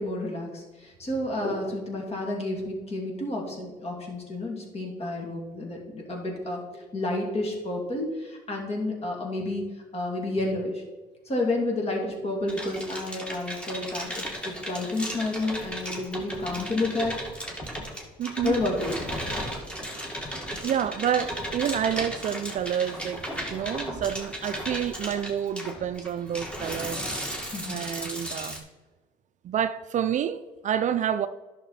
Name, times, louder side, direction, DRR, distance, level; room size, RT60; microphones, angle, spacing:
voice 1, 0.0-6.6 6.9-9.6 9.9-10.8 11.3-17.1 18.4-19.0 27.5-27.8, left 2 dB, 35° left, 2.9 m, -30 dB
sound 1, 12.5-28.6, equal, 5° left, 2.0 m, -35 dB
voice 2, 18.2-18.6 20.6-23.2 23.5-27.1 27.7-28.6 29.4-31.3, right 9 dB, 45° right, 0.4 m, -28 dB
11.0 x 6.2 x 4.3 m
cardioid pair, 110°, 17 cm